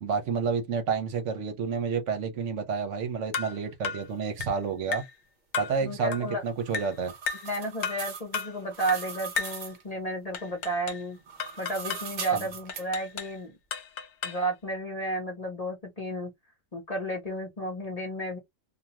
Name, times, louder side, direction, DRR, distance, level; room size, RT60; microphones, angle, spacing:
voice 1, 0.0-5.1 5.6-7.1 12.3-12.5, right 5 dB, 65° right, 1.0 m, -30 dB
sound 1, 3.3-3.6 3.8-4.1 4.4-4.6 4.9-5.2 5.5-5.8 6.1-6.3 6.7-7.0 7.3-7.5 7.8-8.1 8.3-8.6 8.9-9.1 9.4-9.6 10.3-11.1 11.4-12.1 12.7-13.4 13.7-14.5, left 6 dB, 65° left, 0.9 m, -34 dB
voice 2, 5.8-6.4 7.4-11.2 11.6-13.5 14.2-16.3 16.7-18.4, right 1 dB, 35° left, 0.9 m, -32 dB
sound 2, 6.5-9.8 11.2-12.8, right 6 dB, 45° right, 0.7 m, -40 dB
2.5 x 2.3 x 2.8 m
omnidirectional pair, 1.4 m